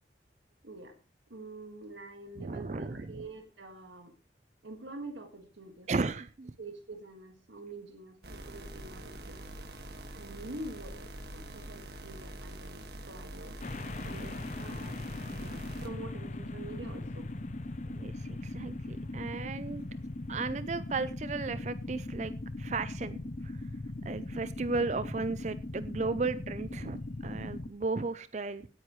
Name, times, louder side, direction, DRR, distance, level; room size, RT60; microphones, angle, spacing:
voice 1, 0.6-1.0 1.3-4.1 4.6-6.1 6.6-9.4 10.1-13.6 14.0-17.3 19.9-20.0, right 2 dB, 85° right, 5 dB, 1.9 m, -46 dB
voice 2, 2.4-3.1 5.9-6.5 17.9-19.8 20.3-23.6 24.0-28.7, right 3 dB, 40° right, 14 dB, 0.5 m, -35 dB
sound 1, 8.2-15.9, right 1 dB, 60° right, 1.8 m, -45 dB
sound 2, 13.6-27.7, left 2 dB, 40° left, 0.6 m, -39 dB
17.5 x 9.5 x 3.1 m, 0.34 s
head